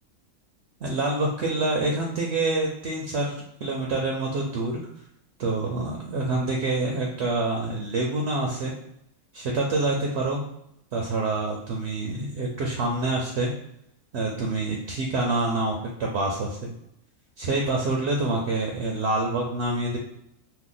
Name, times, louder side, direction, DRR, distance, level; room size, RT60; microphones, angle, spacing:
voice 1, 0.8-4.8 5.4-8.7 9.3-10.4 10.9-13.5 14.1-16.7 17.4-20.0, right 2 dB, 65° right, 0 dB, 0.7 m, -26 dB
2.8 x 2.2 x 3.7 m, 0.78 s
omnidirectional pair, 1.4 m